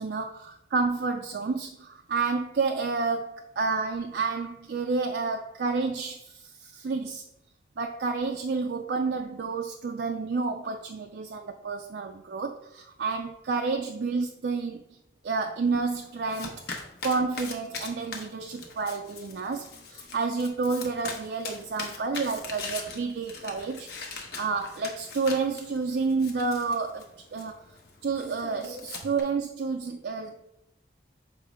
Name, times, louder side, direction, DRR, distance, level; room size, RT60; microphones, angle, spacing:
voice 1, 0.0-7.2 7.8-15.0 15.2-16.6 17.0-23.9 24.3-27.6 28.0-30.5, right 4 dB, 60° right, 4 dB, 0.4 m, -30 dB
Domestic sounds home sounds, 15.6-29.2, left 4 dB, 60° left, 1.0 m, -42 dB
6.7 x 3.1 x 4.9 m, 0.83 s
head